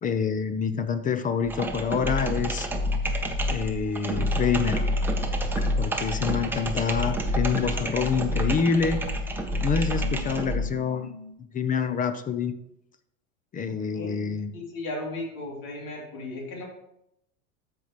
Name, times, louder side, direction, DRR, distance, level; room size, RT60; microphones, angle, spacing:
voice 1, 0.0-2.7 3.5-5.0 5.8-9.0 9.6-11.1 11.5-12.5 13.5-14.5, left 6 dB, 20° left, 11 dB, 0.5 m, -27 dB
sound 1, 1.4-10.7, equal, 5° right, 0.8 m, -28 dB
sound 2, 5.6-5.7 6.1-6.2 6.6-6.7 7.1-7.2 7.6-7.7 8.1-8.2 8.6-8.7 9.1-9.2 9.6-11.3, left 5 dB, 80° left, 1.3 m, -40 dB
voice 2, 13.7-16.7, left 2 dB, 50° left, -3 dB, 3.0 m, -36 dB
13.5 x 5.2 x 3.1 m, 0.80 s
hypercardioid pair, 105°, 41 cm